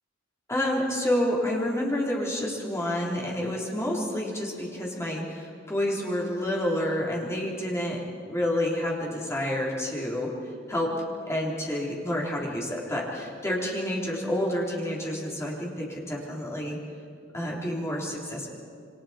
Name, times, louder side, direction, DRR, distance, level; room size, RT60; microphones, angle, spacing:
voice 1, 0.5-8.0 8.3-10.3 10.7-10.9 11.3-16.8 17.3-18.5, left 1 dB, 15° left, -3 dB, 3.6 m, -29 dB
28.0 x 24.5 x 4.4 m, 2.3 s
head